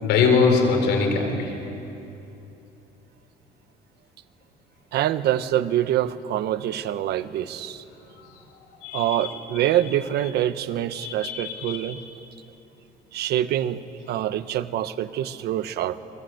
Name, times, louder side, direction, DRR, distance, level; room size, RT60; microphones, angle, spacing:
voice 1, 0.0-1.5 8.8-9.9 10.2-10.3 10.9-12.0, left 5 dB, 85° left, 3 dB, 4.6 m, -23 dB
voice 2, 4.9-7.8 8.9-12.0 13.1-13.8 14.1-16.0, right 12 dB, 75° right, 12 dB, 1.2 m, -25 dB
28.5 x 22.5 x 8.0 m, 2.8 s
cardioid pair, 110°, 17 cm